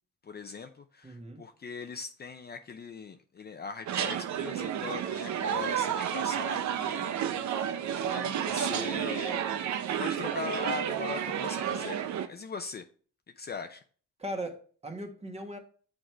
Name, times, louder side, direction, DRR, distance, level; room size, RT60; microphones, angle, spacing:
voice 1, 0.2-7.3 8.1-9.5 10.0-12.0 12.3-12.8 13.4-13.8, left 5 dB, 35° left, 7 dB, 0.6 m, -40 dB
voice 2, 1.0-1.4 14.2-15.6, right 1 dB, 20° right, 4 dB, 1.5 m, -38 dB
sound 1, 3.9-12.3, right 9 dB, 65° right, 0.7 m, -31 dB
6.4 x 4.8 x 4.6 m, 0.42 s
cardioid pair, 90°, 30 cm